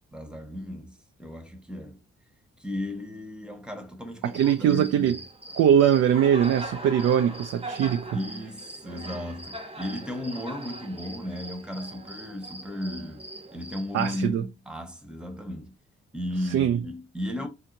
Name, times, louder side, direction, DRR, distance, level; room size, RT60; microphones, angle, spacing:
voice 1, 0.1-2.0 2.6-5.2 8.1-15.7 16.1-17.5, left 1 dB, 5° right, 1.2 m, -35 dB
Cricket, 4.2-14.3, right 1 dB, 20° right, 0.9 m, -41 dB
voice 2, 4.3-5.2 5.5-8.2 13.9-14.4 16.4-16.8, right 9 dB, 60° right, 0.4 m, -22 dB
4.2 x 2.8 x 2.6 m
supercardioid pair, 50°, 29 cm